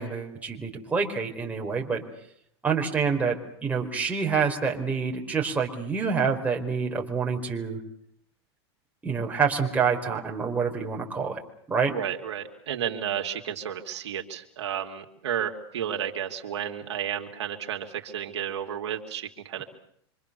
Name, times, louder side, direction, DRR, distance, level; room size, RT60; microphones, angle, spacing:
voice 1, 0.0-2.0 2.6-7.8 9.0-11.4 11.7-11.9, right 5 dB, 10° right, -1 dB, 4.9 m, -27 dB
voice 2, 11.9-19.6, right 9 dB, 90° right, 3 dB, 2.9 m, -32 dB
26.5 x 25.5 x 7.0 m, 0.70 s
supercardioid pair, 130°, 14 cm